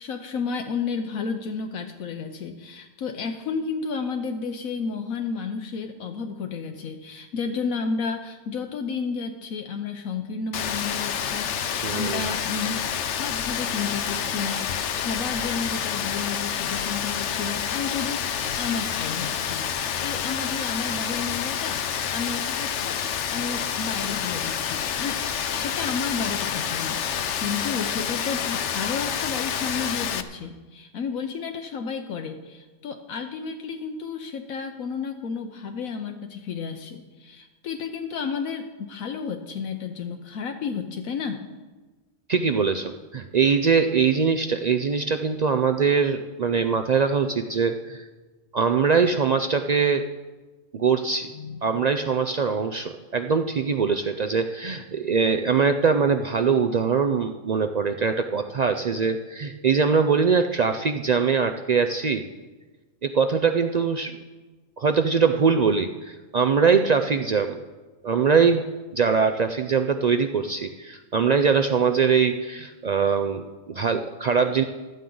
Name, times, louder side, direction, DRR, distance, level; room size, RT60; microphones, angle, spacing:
voice 1, 0.0-12.8 13.1-23.0 23.3-41.5 51.3-51.6, left 5 dB, 80° left, 5 dB, 1.2 m, -32 dB
Rain, 10.5-30.2, left 8 dB, 60° left, 1.0 m, -28 dB
voice 2, 11.8-12.2 42.3-48.0 48.5-50.0 50.7-51.3 51.6-62.2 63.0-64.1 64.8-67.6 68.0-68.6 68.9-74.6, right 5 dB, 75° right, 7 dB, 0.3 m, -22 dB
14.5 x 13.5 x 3.9 m, 1.3 s
omnidirectional pair, 1.4 m